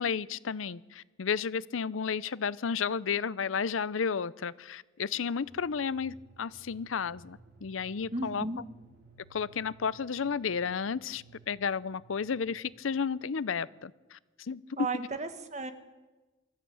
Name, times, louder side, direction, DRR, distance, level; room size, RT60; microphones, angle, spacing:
voice 1, 0.0-8.5 9.3-14.2 14.5-14.6, left 6 dB, 80° left, 20 dB, 0.6 m, -32 dB
sound 1, 5.4-13.2, right 3 dB, 50° right, 4.6 m, -58 dB
voice 2, 8.1-8.6 14.8-15.7, right 3 dB, 35° right, 8 dB, 1.6 m, -34 dB
23.0 x 13.5 x 8.7 m, 1.2 s
head